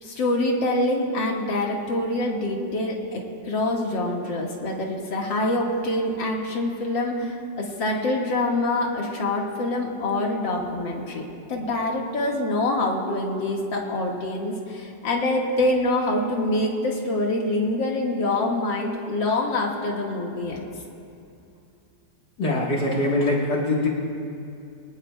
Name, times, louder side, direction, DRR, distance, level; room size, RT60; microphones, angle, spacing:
voice 1, 0.0-20.6, left 2 dB, 85° left, -1 dB, 2.4 m, -25 dB
voice 2, 22.4-23.9, left 2 dB, 60° left, -3 dB, 2.0 m, -23 dB
24.5 x 19.0 x 2.2 m, 2.6 s
omnidirectional pair, 2.0 m